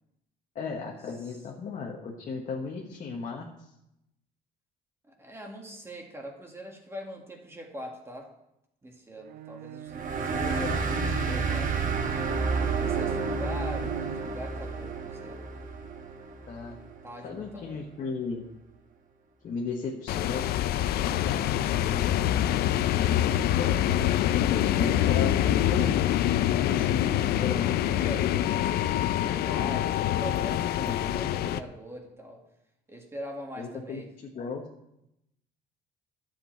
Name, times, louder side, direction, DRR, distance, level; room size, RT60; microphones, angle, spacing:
voice 1, 0.5-3.7 10.4-11.5 16.5-16.8 17.2-18.4 19.4-20.4 21.0-22.0 23.0-26.2 26.6-27.7 30.8-31.4 33.6-34.6, left 4 dB, 50° left, -1 dB, 1.3 m, -36 dB
voice 2, 5.1-8.3 8.8-10.5 10.9-11.7 12.8-15.4 16.7-17.9 27.9-32.4 32.9-34.1, equal, 15° right, 1 dB, 1.8 m, -42 dB
Bowed string instrument, 9.2-14.5, right 6 dB, 70° right, 0.6 m, -42 dB
sound 1, 9.9-17.0, right 4 dB, 50° right, 1.4 m, -30 dB
sound 2, 20.1-31.6, left 12 dB, 70° left, 0.5 m, -25 dB
11.0 x 7.8 x 4.5 m, 0.84 s
cardioid pair, 110°, 17 cm